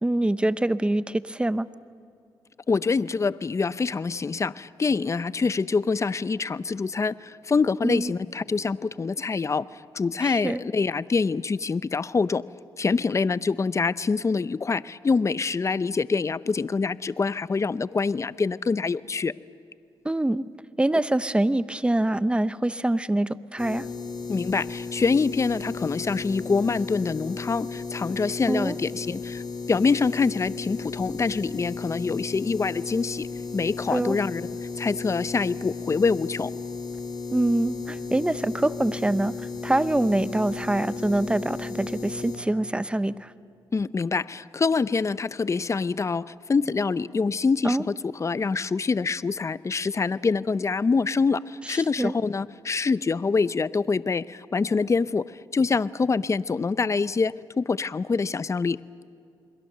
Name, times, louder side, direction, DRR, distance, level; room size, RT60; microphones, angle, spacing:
voice 1, 0.0-1.7 7.8-8.1 10.2-10.6 20.0-20.4 20.8-23.9 28.5-28.8 33.9-34.2 37.3-39.3 39.6-43.3 47.6-47.8 51.7-52.1, right 1 dB, 10° right, 15 dB, 0.8 m, -25 dB
voice 2, 2.7-12.4 12.8-19.3 24.3-29.4 29.7-33.3 33.5-34.4 34.7-36.5 43.7-58.8, left 4 dB, 30° left, 17 dB, 0.6 m, -25 dB
sound 1, 23.6-42.4, left 4 dB, 50° left, 4.6 m, -35 dB
28.0 x 22.0 x 6.8 m, 2.5 s
cardioid pair, 65°, 9 cm